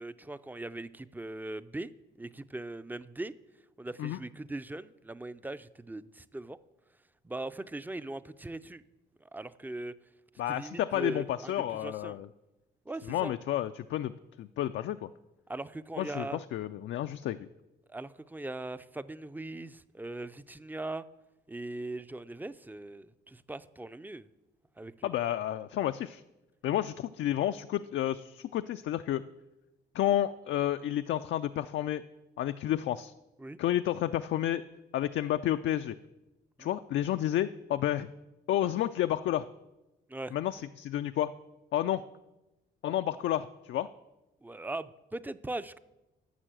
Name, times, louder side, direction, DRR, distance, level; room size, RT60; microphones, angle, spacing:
voice 1, 0.0-1.9 2.2-3.3 3.8-6.6 7.2-8.8 9.2-9.9 10.5-11.5 11.8-12.2 12.9-13.3 15.5-16.4 17.9-21.0 21.5-24.3 24.8-25.1 33.4-33.6 36.6-36.7 40.1-40.3 44.4-45.8, right 2 dB, 10° right, 14 dB, 0.4 m, -40 dB
voice 2, 10.4-12.3 13.1-15.1 16.0-17.5 25.0-26.2 26.6-29.2 29.9-32.0 32.4-33.1 33.6-34.6 34.9-36.0 36.6-38.1 38.5-39.5 40.3-41.3 41.7-42.0 42.8-43.9, left 12 dB, 70° left, 10 dB, 0.4 m, -31 dB
11.5 x 6.3 x 7.6 m, 1.0 s
cardioid pair, 90°, 20 cm